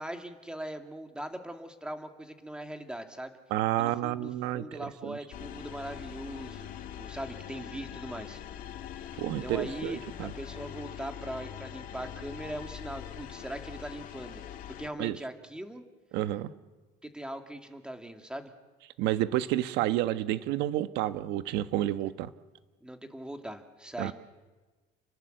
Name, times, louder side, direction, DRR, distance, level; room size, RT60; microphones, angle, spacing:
voice 1, 0.0-3.4 3.8-8.4 9.4-14.4 14.8-15.8 17.0-18.5 22.8-24.1, right 1 dB, 5° right, 5 dB, 2.3 m, -40 dB
voice 2, 3.5-5.2 9.1-10.3 15.0-15.2 16.1-16.5 19.0-22.3 24.0-24.1, right 14 dB, 80° right, 11 dB, 1.3 m, -30 dB
sound 1, 5.3-14.9, left 10 dB, 50° left, 2.0 m, -43 dB
29.5 x 22.0 x 7.9 m, 1.3 s
cardioid pair, 140°, 17 cm